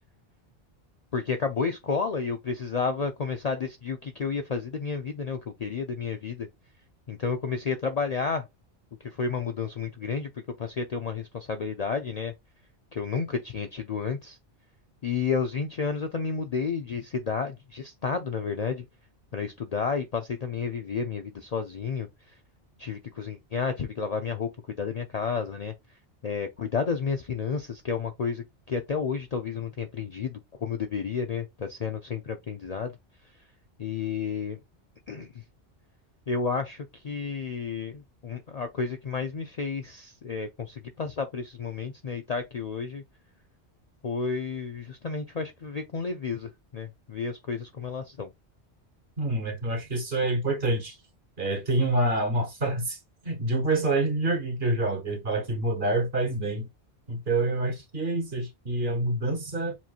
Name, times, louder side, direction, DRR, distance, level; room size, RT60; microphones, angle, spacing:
voice 1, 1.1-6.5 7.1-8.4 9.0-10.3 10.6-12.3 12.9-14.4 15.0-18.9 19.3-22.1 22.8-24.5 24.8-25.7 26.2-32.9 33.8-34.6 35.1-35.4 36.3-43.0 44.0-48.3, left 5 dB, 50° left, 0.5 m, -31 dB
voice 2, 49.2-51.0 51.4-53.0 53.2-56.6 57.1-59.8, right 2 dB, 50° right, 1.4 m, -27 dB
7.3 x 2.9 x 2.4 m
omnidirectional pair, 1.1 m